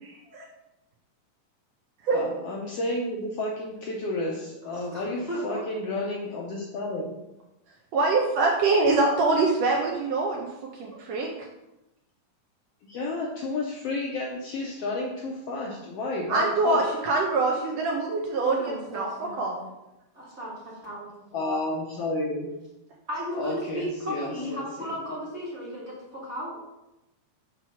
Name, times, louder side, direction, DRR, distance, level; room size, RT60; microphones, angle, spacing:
voice 1, 2.1-7.1 12.8-16.8 21.3-22.5 23.3-25.0, left 2 dB, 75° left, -2 dB, 1.4 m, -31 dB
voice 2, 4.9-5.6 18.4-19.7 20.1-21.4 23.1-26.6, equal, 30° right, -7 dB, 1.2 m, -35 dB
voice 3, 7.9-10.5 10.8-11.3 16.3-19.1 19.4-19.5, right 3 dB, 75° right, -1 dB, 1.6 m, -24 dB
6.0 x 3.0 x 5.6 m, 0.94 s
omnidirectional pair, 3.5 m